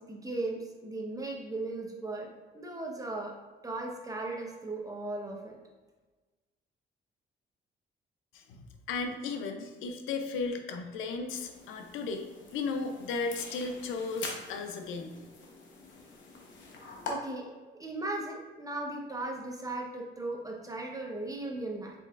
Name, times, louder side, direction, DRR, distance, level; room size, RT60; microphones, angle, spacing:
voice 1, 0.1-3.3 3.6-5.6 17.1-21.9, right 2 dB, 15° right, 0 dB, 0.9 m, -37 dB
voice 2, 8.9-15.1, left 4 dB, 90° left, 5 dB, 0.6 m, -35 dB
sound 1, 11.3-17.1, left 4 dB, 75° left, 0.9 m, -45 dB
5.2 x 4.0 x 2.4 m, 1.3 s
cardioid pair, 90°, 20 cm